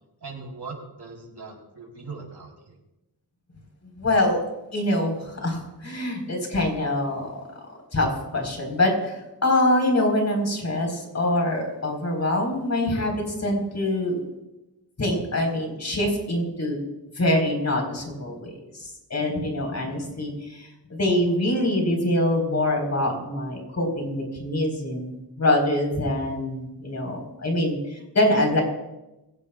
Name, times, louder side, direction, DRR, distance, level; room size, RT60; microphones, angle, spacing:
voice 1, 0.2-2.7 20.0-20.1, right 4 dB, 75° right, 0 dB, 4.2 m, -40 dB
voice 2, 4.0-4.4 4.7-7.4 7.9-14.2 15.0-16.8 17.2-28.6, left 1 dB, 40° left, 2 dB, 4.5 m, -24 dB
23.5 x 16.0 x 2.4 m, 0.96 s
wide cardioid pair, 130°, 40 cm